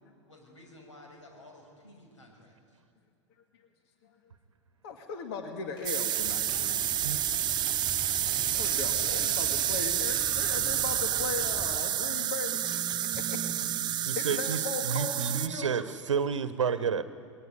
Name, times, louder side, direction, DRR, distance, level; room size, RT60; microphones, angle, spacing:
voice 1, 0.2-2.8 6.4-6.7 13.0-13.5, left 1 dB, 85° left, 1 dB, 6.1 m, -54 dB
voice 2, 4.8-6.9 8.5-13.4 13.7-13.8 14.2-15.7, left 5 dB, 55° left, 5 dB, 2.1 m, -38 dB
Squeak, 5.8-11.5, left 2 dB, 30° left, 4.1 m, -50 dB
sound 1, 5.8-15.5, right 11 dB, 30° right, 0.8 m, -29 dB
sound 2, 6.2-11.8, right 1 dB, 10° left, 3.4 m, -44 dB
voice 3, 14.1-17.0, right 6 dB, 80° right, 13 dB, 1.0 m, -30 dB
21.0 x 19.0 x 9.9 m, 2.3 s
hypercardioid pair, 95°, 15 cm